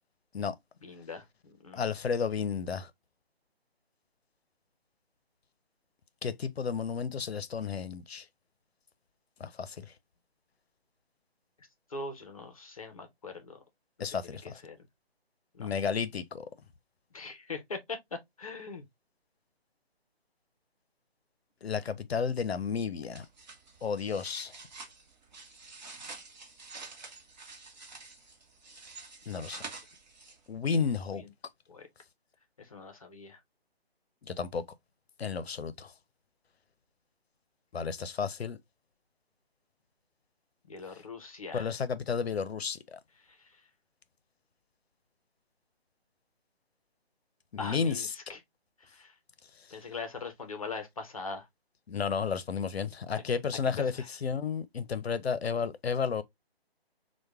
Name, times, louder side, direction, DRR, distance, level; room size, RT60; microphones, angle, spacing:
voice 1, 0.8-1.8 11.9-13.6 14.0-14.8 15.5-15.7 17.1-18.8 29.3-29.7 30.7-30.8 31.1-31.3 31.7-31.9 32.6-33.4 40.6-41.7 43.2-43.6 47.6-48.4 48.8-49.1 49.7-51.5 53.1-53.2 53.8-54.1, left 3 dB, 35° left, 0.6 m, -42 dB
voice 2, 1.7-2.9 6.2-8.2 9.4-9.9 14.0-14.6 15.6-16.5 21.6-23.3 23.8-24.5 29.3-29.6 30.5-31.2 34.2-34.6 35.2-35.9 37.7-38.6 41.5-43.0 47.5-48.1 49.7-49.8 51.9-53.9 54.2-56.2, left 6 dB, 75° left, 0.5 m, -32 dB
sound 1, 23.1-30.6, right 4 dB, 45° right, 0.9 m, -48 dB
4.5 x 2.2 x 2.3 m
figure-of-eight pair, 150°, 31 cm